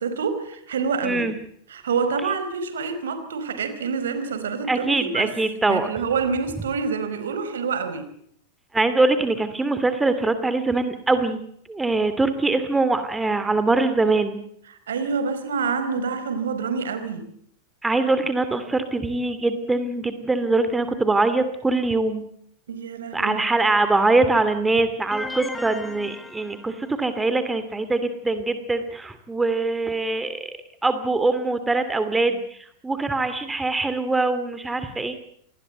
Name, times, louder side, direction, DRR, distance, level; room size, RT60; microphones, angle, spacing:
voice 1, 0.0-1.3 1.7-5.3 5.7-8.0 14.9-17.3 22.7-23.4, right 5 dB, 65° right, 10 dB, 4.8 m, -27 dB
voice 2, 1.0-1.4 4.7-5.9 8.7-11.4 11.7-14.4 17.8-22.3 23.1-35.2, right 3 dB, 10° right, 11 dB, 2.5 m, -23 dB
sound 1, 25.1-27.2, left 2 dB, 5° left, 2.4 m, -36 dB
27.5 x 20.5 x 8.2 m, 0.70 s
figure-of-eight pair, 90°, 0 cm